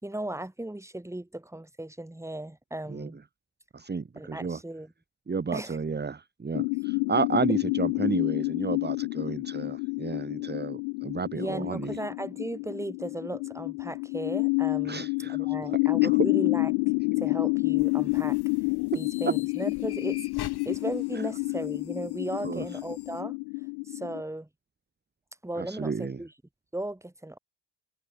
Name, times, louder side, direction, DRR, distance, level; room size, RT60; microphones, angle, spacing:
voice 1, 0.0-3.2 4.2-4.9 5.5-5.8 11.4-16.7 17.2-18.4 18.9-23.4 23.8-24.5 25.4-26.3 26.7-27.4, right 1 dB, 5° right, 2.4 m, -36 dB
voice 2, 3.7-4.6 5.3-12.0 14.8-15.6 16.0-16.1 22.4-22.6 25.6-26.2, right 5 dB, 20° right, 1.5 m, -32 dB
sound 1, 6.5-24.2, left 40 dB or more, 80° left, 1.1 m, -29 dB
sound 2, 17.8-23.2, left 10 dB, 55° left, 4.3 m, -47 dB
hypercardioid pair, 55°, 44 cm